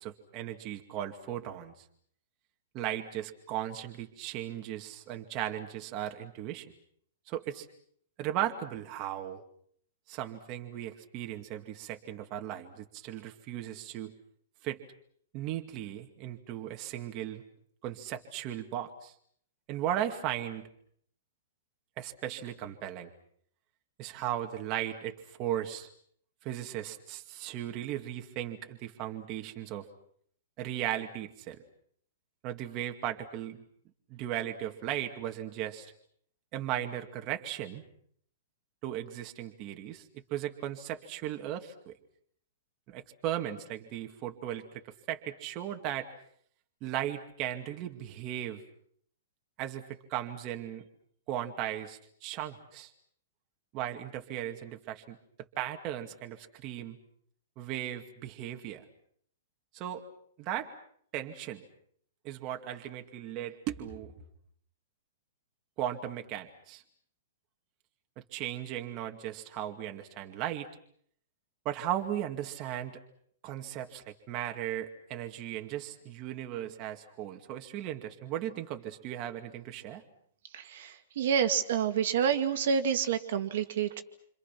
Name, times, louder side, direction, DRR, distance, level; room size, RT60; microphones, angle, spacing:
voice 1, 0.0-1.7 2.7-6.7 7.3-7.7 8.2-9.4 10.1-14.1 14.6-14.8 15.3-17.4 17.8-19.1 19.7-20.7 22.0-23.1 24.0-25.9 26.4-29.8 30.6-31.6 32.4-33.6 34.1-35.9 36.5-37.8 38.8-40.0 40.3-41.9 42.9-46.1 46.8-48.6 49.6-50.8 51.3-52.9 53.7-55.2 55.6-57.0 57.6-58.8 59.7-60.1 60.4-60.7 61.1-61.6 62.2-64.1 65.8-66.8 68.3-70.7 71.6-73.0 73.4-80.0, right 11 dB, 25° right, 4 dB, 2.3 m, -36 dB
voice 2, 80.5-84.0, right 7 dB, 55° right, 7 dB, 2.2 m, -28 dB
28.5 x 27.0 x 6.1 m, 0.65 s
hypercardioid pair, 170°, 0 cm